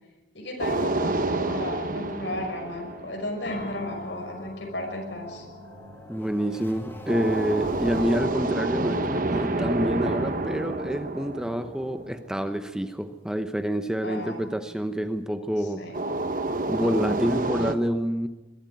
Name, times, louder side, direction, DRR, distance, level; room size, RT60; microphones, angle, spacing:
voice 1, 0.3-5.5 14.0-14.5 15.8-16.0, left 1 dB, 80° left, 3 dB, 5.7 m, -34 dB
sound 1, 0.6-3.7 7.1-12.5 15.9-17.7, right 2 dB, 50° right, 1.1 m, -28 dB
sound 2, 2.9-8.1, left 1 dB, 15° left, 3.2 m, -44 dB
sound 3, 3.4-15.2, left 1 dB, 65° left, 6.2 m, -47 dB
voice 2, 6.1-15.8 16.7-18.3, equal, 5° right, 8 dB, 0.8 m, -27 dB
21.5 x 13.5 x 9.3 m, 1.1 s
head